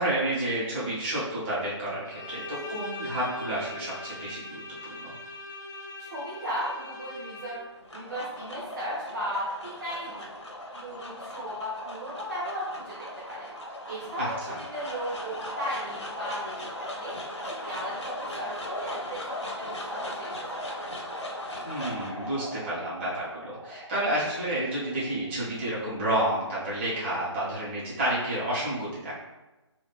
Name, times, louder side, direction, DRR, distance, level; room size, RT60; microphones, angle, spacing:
voice 1, 0.0-4.6 5.0-5.1 14.2-14.6 21.6-29.2, right 1 dB, 25° right, -9 dB, 1.5 m, -30 dB
Bowed string instrument, 2.0-7.9, left 2 dB, 40° left, 0.6 m, -41 dB
voice 2, 6.0-7.6 7.9-10.3 10.7-12.9 13.3-13.5 13.8-17.1 17.4-20.8, equal, 40° right, -9 dB, 1.1 m, -36 dB
sound 1, 7.6-25.9, left 1 dB, 65° left, 1.3 m, -38 dB
5.0 x 3.1 x 3.3 m, 1.1 s
figure-of-eight pair, 150°, 15 cm